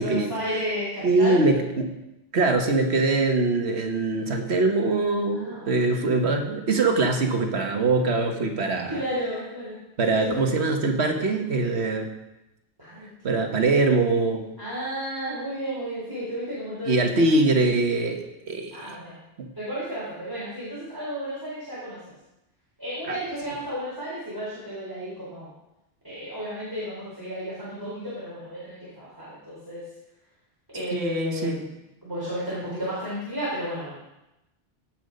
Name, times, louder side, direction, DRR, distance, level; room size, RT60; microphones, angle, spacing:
voice 1, 0.0-1.4 5.3-5.8 8.9-9.8 10.1-10.4 12.8-13.5 14.6-17.3 18.7-19.2 19.5-22.0 22.8-25.5 26.0-29.8 30.7-31.7 32.0-34.0, equal, 20° right, -9 dB, 4.3 m, -33 dB
voice 2, 1.0-1.9 2.3-9.0 10.0-12.1 13.2-14.5 16.9-18.9 19.4-19.5 23.1-23.2 30.9-31.6, right 3 dB, 75° right, 4 dB, 1.6 m, -23 dB
17.0 x 6.1 x 5.3 m, 0.93 s
omnidirectional pair, 1.1 m